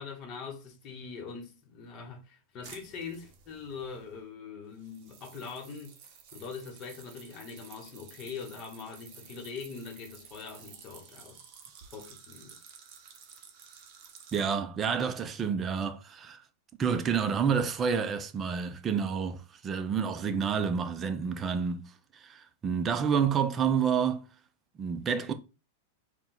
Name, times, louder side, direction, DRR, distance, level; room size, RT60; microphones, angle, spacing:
voice 1, 0.0-5.9 6.3-11.4 11.9-12.6, left 5 dB, 30° left, 0.9 m, -42 dB
sound 1, 2.6-4.2 4.8-14.4, right 7 dB, 40° right, 0.8 m, -53 dB
voice 2, 14.3-16.4 16.8-24.3 24.8-25.3, right 6 dB, 20° right, 0.4 m, -29 dB
4.5 x 2.2 x 3.7 m
supercardioid pair, 160°, 0 cm